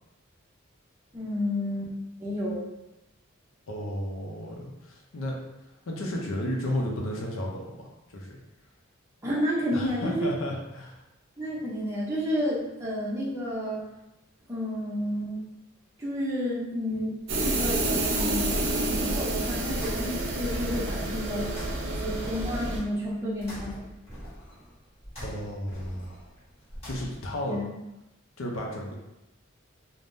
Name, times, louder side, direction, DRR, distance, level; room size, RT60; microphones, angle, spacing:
voice 1, 1.1-1.9 2.2-2.7 9.2-10.3 11.4-13.8 14.5-15.5 16.0-17.1 17.4-21.5 22.0-23.8 27.5-27.7, equal, 15° right, -7 dB, 0.6 m, -31 dB
voice 2, 3.7-5.4 5.9-8.4 9.7-11.0 25.2-26.2 26.8-27.6 28.4-28.9, left 1 dB, 75° left, 0 dB, 0.6 m, -33 dB
sound 1, 17.2-27.4, equal, 30° left, 1.5 m, -44 dB
sound 2, 17.3-22.8, right 2 dB, 65° right, 0.6 m, -29 dB
3.4 x 2.1 x 2.6 m, 0.92 s
head